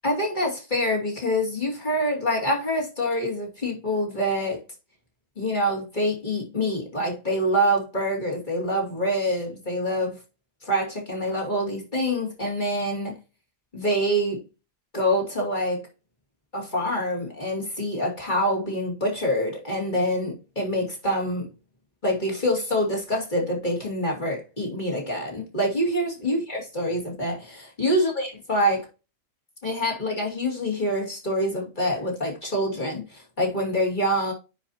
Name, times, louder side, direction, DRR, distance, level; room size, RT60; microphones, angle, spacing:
voice 1, 0.0-4.6 5.4-10.2 10.6-13.2 13.7-14.4 14.9-15.8 16.5-21.5 22.0-28.9 29.6-34.3, equal, 15° left, 2.4 m, -26 dB
9.9 x 4.9 x 2.8 m
omnidirectional pair, 3.3 m